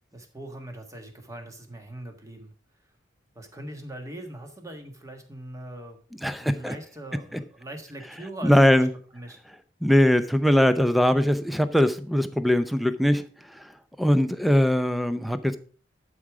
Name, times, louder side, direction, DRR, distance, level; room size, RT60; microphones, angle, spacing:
voice 1, 0.1-2.5 3.3-6.0 6.4-8.9 9.1-9.4, right 1 dB, 15° right, 1.4 m, -41 dB
voice 2, 6.2-6.7 7.3-7.4 8.4-8.9 9.8-13.2 13.5-13.6 14.0-15.6, equal, ahead, 0.5 m, -21 dB
11.5 x 4.9 x 4.8 m
head